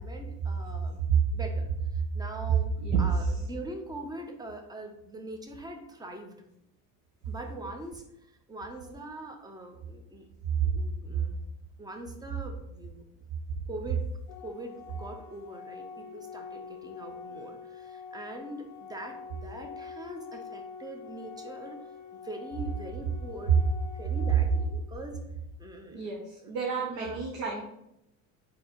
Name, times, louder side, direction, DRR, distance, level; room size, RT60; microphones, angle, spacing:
voice 1, 0.0-1.0 1.3-2.7 3.0-6.4 7.3-10.3 10.6-11.4 11.8-13.2 13.7-14.1 14.4-23.7 23.9-25.2 25.6-26.1 26.4-26.5 26.8-27.2, right 1 dB, 10° right, 4 dB, 0.7 m, -43 dB
Organ, 14.3-25.3, left 5 dB, 45° left, 0.5 m, -45 dB
voice 2, 25.9-27.6, right 7 dB, 65° right, -1 dB, 1.0 m, -29 dB
4.0 x 2.9 x 4.2 m, 0.82 s
supercardioid pair, 95°, 39 cm